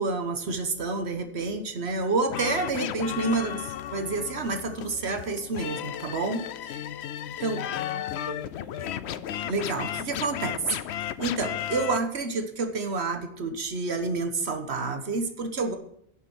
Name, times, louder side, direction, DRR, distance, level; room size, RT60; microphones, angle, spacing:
voice 1, 0.0-6.8 7.4-7.6 9.4-10.8 11.2-15.8, right 3 dB, 80° right, 7 dB, 1.4 m, -29 dB
sound 1, 2.3-12.0, left 11 dB, 85° left, 0.9 m, -34 dB
voice 2, 7.2-9.2, left 1 dB, 25° left, -1 dB, 4.9 m, -44 dB
11.5 x 7.4 x 6.1 m, 0.70 s
omnidirectional pair, 1.1 m